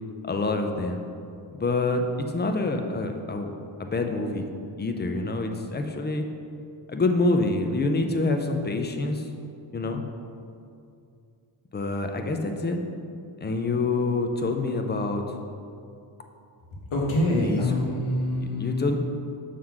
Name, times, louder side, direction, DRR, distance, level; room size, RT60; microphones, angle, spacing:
voice 1, 0.2-1.0 1.6-3.5 3.8-4.4 4.8-6.2 6.9-9.2 9.7-10.0 11.7-12.8 13.4-15.2 17.4-17.6 18.4-19.0, left 2 dB, 20° left, 5 dB, 0.4 m, -26 dB
voice 2, 16.9-19.0, left 1 dB, 80° left, -2 dB, 1.2 m, -25 dB
6.4 x 3.8 x 5.8 m, 2.5 s
wide cardioid pair, 145°, 48 cm